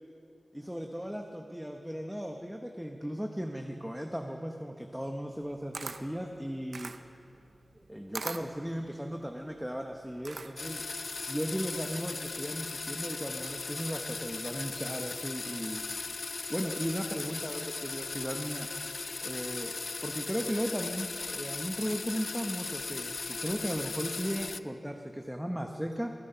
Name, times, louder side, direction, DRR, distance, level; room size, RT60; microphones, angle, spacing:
voice 1, 0.5-6.9 7.8-10.8 11.3-15.8 16.5-18.7 19.2-19.7 20.0-26.1, equal, 5° right, 3 dB, 1.0 m, -36 dB
Camera, 5.3-10.8, right 4 dB, 80° right, 0.6 m, -42 dB
sound 1, 10.6-24.6, left 4 dB, 70° left, 0.4 m, -38 dB
21.0 x 10.0 x 5.6 m, 2.7 s
cardioid pair, 45°, 0 cm